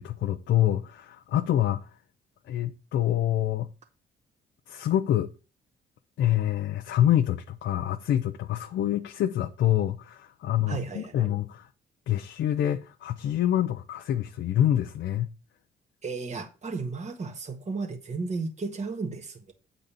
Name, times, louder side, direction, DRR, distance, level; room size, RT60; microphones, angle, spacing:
voice 1, 0.0-1.9 2.5-3.7 4.7-5.3 6.2-11.7 12.1-15.3, left 11 dB, 70° left, 0.7 m, -26 dB
voice 2, 10.7-11.3 16.0-19.5, right 4 dB, 35° right, 1.5 m, -34 dB
8.8 x 4.0 x 6.8 m
cardioid pair, 90°, 20 cm